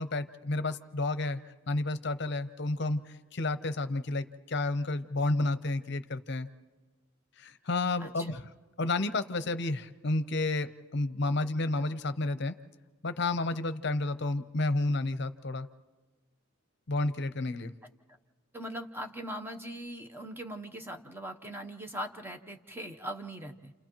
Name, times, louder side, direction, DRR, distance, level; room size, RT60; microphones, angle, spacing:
voice 1, 0.0-1.4 1.7-6.5 7.4-8.4 8.8-12.5 13.0-15.7 16.9-17.7, left 2 dB, 55° left, 11 dB, 0.7 m, -31 dB
voice 2, 8.0-8.3 18.5-23.7, right 1 dB, 10° right, 5 dB, 0.8 m, -40 dB
30.0 x 29.0 x 3.0 m, 1.3 s
head